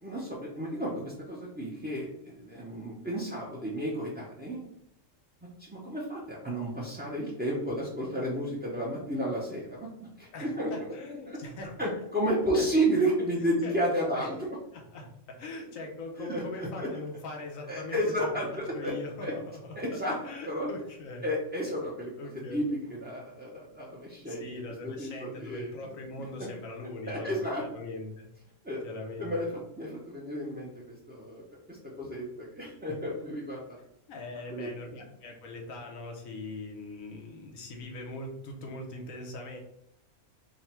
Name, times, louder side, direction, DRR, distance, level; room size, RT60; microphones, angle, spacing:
voice 1, 0.0-4.7 5.6-9.9 10.2-10.7 11.3-11.4 11.8-14.4 16.2-16.9 17.7-18.9 19.2-19.3 19.7-20.1 20.5-20.7 21.2-24.5 24.8-25.7 26.4-26.5 27.1-27.6 28.6-28.8 29.2-29.5 29.8-33.8 34.5-34.7, right 1 dB, 15° right, -5 dB, 0.4 m, -32 dB
voice 2, 10.3-11.8 12.5-12.7 13.6-14.3 14.7-18.3 18.7-21.3 22.2-22.6 24.3-28.3 28.8-29.6 34.1-39.6, left 2 dB, 90° left, 1 dB, 1.3 m, -41 dB
3.8 x 2.1 x 4.3 m, 0.80 s
omnidirectional pair, 1.4 m